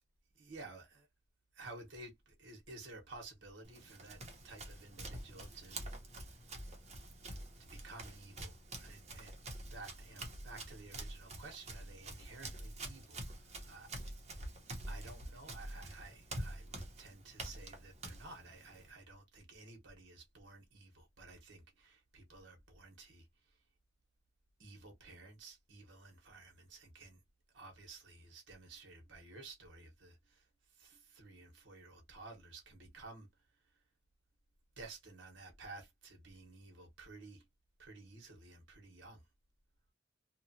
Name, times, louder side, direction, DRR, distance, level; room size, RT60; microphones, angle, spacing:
voice 1, 0.3-1.1 1.5-5.9 6.1-6.4 7.6-9.4 9.7-13.9 14.9-23.6 24.6-27.2 27.5-33.3 33.6-33.8 34.8-37.4 37.8-39.2, right 3 dB, 75° right, 1.1 m, -54 dB
Run, 3.6-18.9, right 1 dB, 35° right, 0.9 m, -47 dB
2.9 x 2.4 x 2.6 m
head